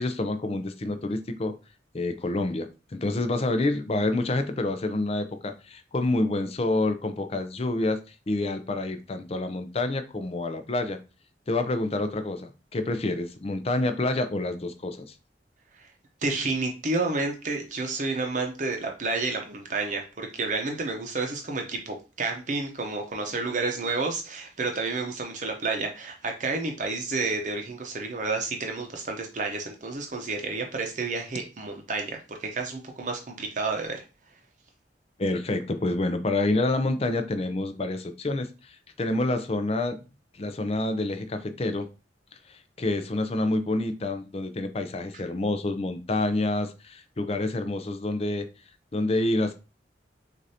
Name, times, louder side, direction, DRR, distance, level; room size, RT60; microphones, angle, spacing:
voice 1, 0.0-1.5 1.9-11.0 11.5-15.1 35.2-40.0 40.3-41.9 42.5-48.5 48.9-49.5, left 2 dB, 35° left, 8 dB, 0.5 m, -28 dB
voice 2, 16.2-34.0, right 3 dB, 45° right, 3 dB, 0.7 m, -30 dB
6.4 x 2.6 x 2.8 m, 0.31 s
head